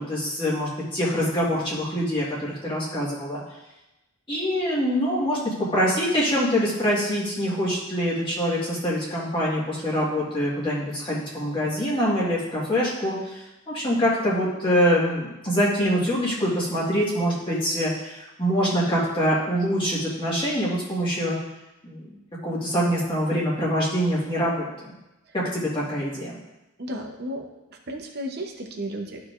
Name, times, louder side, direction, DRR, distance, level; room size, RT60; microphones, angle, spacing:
voice 1, 0.0-3.4 4.3-21.4 21.8-24.9 25.3-26.3, equal, 25° left, -7 dB, 1.7 m, -25 dB
voice 2, 26.8-27.4 27.7-29.2, equal, 45° right, 1 dB, 0.8 m, -33 dB
13.5 x 4.8 x 2.5 m, 0.98 s
head